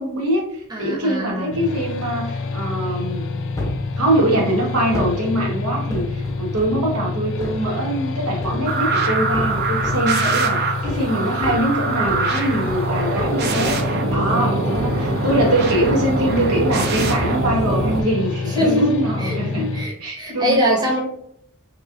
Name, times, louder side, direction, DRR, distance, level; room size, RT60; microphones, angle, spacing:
voice 1, 0.0-3.2 4.0-19.7 20.0-20.8, right 1 dB, 80° right, -1 dB, 1.0 m, -23 dB
voice 2, 0.7-1.6 18.5-21.0, equal, 20° right, -2 dB, 0.8 m, -22 dB
sound 1, 1.5-19.9, left 3 dB, 55° left, 0.4 m, -28 dB
sound 2, 3.6-3.9 4.9-5.2 5.9-6.9 7.4-7.6 8.4-8.8 9.3-10.1 10.8-11.1 11.4-15.0 15.3-15.5 15.9-16.2 17.0-17.2 18.0-18.4 19.0-19.1, left 1 dB, 15° left, 0.7 m, -31 dB
sound 3, 8.7-18.0, right 3 dB, 45° right, 0.5 m, -23 dB
3.0 x 2.5 x 3.7 m, 0.70 s
head